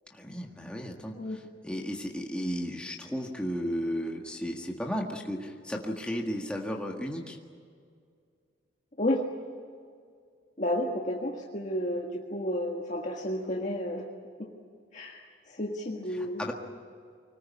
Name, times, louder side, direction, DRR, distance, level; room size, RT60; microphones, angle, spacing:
voice 1, 0.1-7.4 16.1-16.5, equal, 5° left, 0 dB, 1.7 m, -34 dB
voice 2, 10.6-14.1 14.4-14.5 14.9-15.2 15.5-16.4, left 1 dB, 40° left, 0 dB, 1.7 m, -31 dB
25.0 x 20.0 x 8.5 m, 2.2 s
head